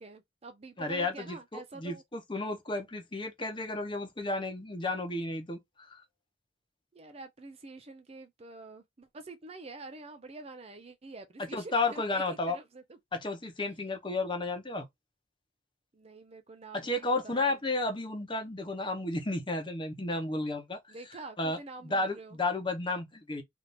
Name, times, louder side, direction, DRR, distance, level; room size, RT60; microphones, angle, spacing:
voice 1, 0.0-2.0 6.9-13.0 15.9-17.6 20.9-22.4, right 3 dB, 30° right, 0.5 m, -47 dB
voice 2, 0.8-6.0 11.5-12.6 13.1-14.8 16.7-20.8 21.4-21.6 21.8-23.4, left 2 dB, 25° left, 0.9 m, -32 dB
3.4 x 2.7 x 4.1 m
head